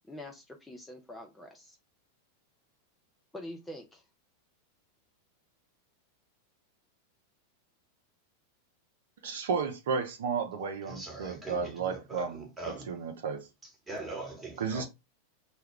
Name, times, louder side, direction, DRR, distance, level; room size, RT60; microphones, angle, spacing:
voice 1, 0.1-1.8 3.3-4.0, left 1 dB, 10° left, 0.5 m, -45 dB
voice 2, 9.2-12.4 12.9-13.5 14.6-14.9, right 5 dB, 60° right, 0.5 m, -33 dB
voice 3, 10.8-12.9 13.6-14.9, right 2 dB, 10° right, 1.2 m, -42 dB
2.2 x 2.1 x 3.5 m
figure-of-eight pair, 90°, 0 cm